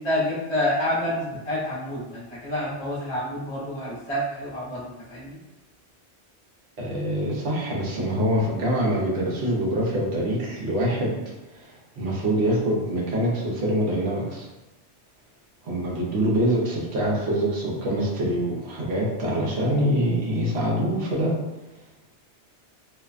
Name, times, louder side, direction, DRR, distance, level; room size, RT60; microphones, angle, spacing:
voice 1, 0.0-5.4, left 1 dB, 30° left, -8 dB, 0.7 m, -28 dB
voice 2, 6.8-11.2 11.5-14.5 15.6-21.4, right 1 dB, 70° right, -4 dB, 1.0 m, -25 dB
2.6 x 2.1 x 2.4 m, 1.0 s
omnidirectional pair, 1.2 m